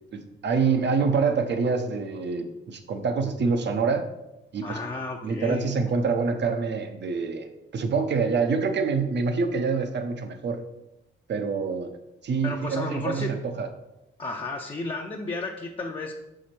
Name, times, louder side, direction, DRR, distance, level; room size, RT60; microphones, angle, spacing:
voice 1, 0.1-4.1 4.5-4.8 5.2-10.6 11.3-11.9 12.2-13.7, right 5 dB, 60° right, 7 dB, 0.9 m, -26 dB
voice 2, 4.6-5.7 12.4-13.4 14.2-16.1, left 3 dB, 25° left, 0 dB, 0.7 m, -33 dB
6.4 x 4.9 x 4.4 m, 0.93 s
cardioid pair, 95°, 21 cm